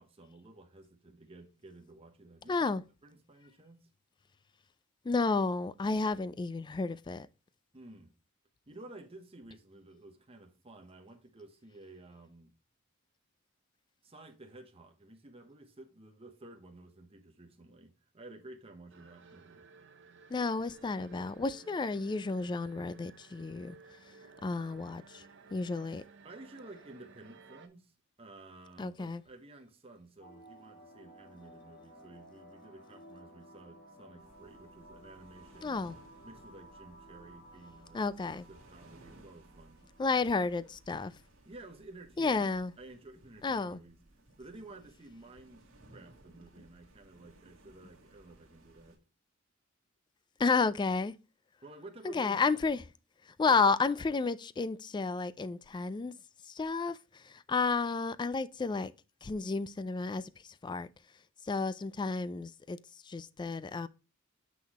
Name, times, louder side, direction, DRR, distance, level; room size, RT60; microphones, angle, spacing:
voice 1, 0.0-2.7 3.0-3.9 7.7-8.1 8.7-12.5 14.0-19.7 26.2-35.9 36.2-39.8 41.4-44.0 44.4-45.6 45.9-49.0 51.6-52.4 53.5-53.7, right 2 dB, 30° right, 0.9 m, -53 dB
voice 2, 2.5-2.8 5.0-7.3 20.3-23.8 24.4-25.2 25.5-26.0 28.8-29.2 35.6-36.0 37.9-38.4 40.0-41.1 42.2-42.7 43.4-43.8 50.4-51.1 52.1-52.8 53.4-56.1 56.5-58.9 59.2-60.2 60.6-60.9 61.4-62.8 63.1-63.9, left 4 dB, 20° left, 0.3 m, -31 dB
sound 1, 18.9-27.7, right 4 dB, 60° right, 0.8 m, -56 dB
sound 2, 30.2-41.2, right 1 dB, 45° left, 2.3 m, -56 dB
sound 3, 34.2-49.0, right 1 dB, 75° right, 1.6 m, -60 dB
6.3 x 5.8 x 2.9 m
head